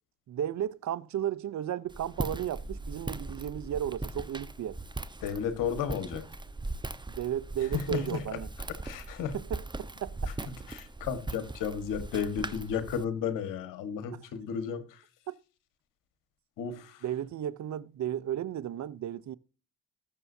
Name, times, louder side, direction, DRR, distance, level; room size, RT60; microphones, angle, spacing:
voice 1, 0.3-4.8 7.1-8.5 9.3-10.3 15.3-15.4 17.0-19.4, right 10 dB, 60° right, 0.7 m, -34 dB
Walk footsteps, 1.9-13.0, right 2 dB, 15° right, 1.0 m, -39 dB
voice 2, 5.2-6.2 7.7-8.2 8.8-9.3 10.3-15.0 16.6-17.0, left 7 dB, 90° left, 1.6 m, -33 dB
20.0 x 6.8 x 2.7 m
supercardioid pair, 60°, 32 cm